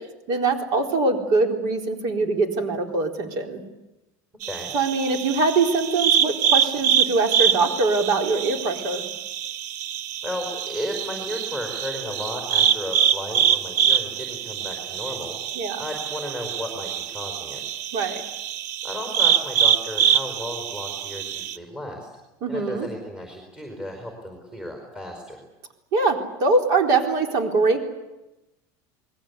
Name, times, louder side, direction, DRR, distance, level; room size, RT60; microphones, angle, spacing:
voice 1, 0.3-3.6 4.7-9.0 15.5-15.8 17.9-18.2 22.4-22.9 25.9-27.8, right 3 dB, 45° right, 3 dB, 4.2 m, -23 dB
voice 2, 4.4-4.7 10.2-15.4 15.8-17.6 18.8-22.1 22.5-25.4, left 1 dB, 10° right, 2 dB, 4.7 m, -34 dB
sound 1, 4.4-21.6, right 9 dB, 90° right, 1.1 m, -25 dB
29.0 x 21.5 x 8.3 m, 0.99 s
cardioid pair, 180°, 9 cm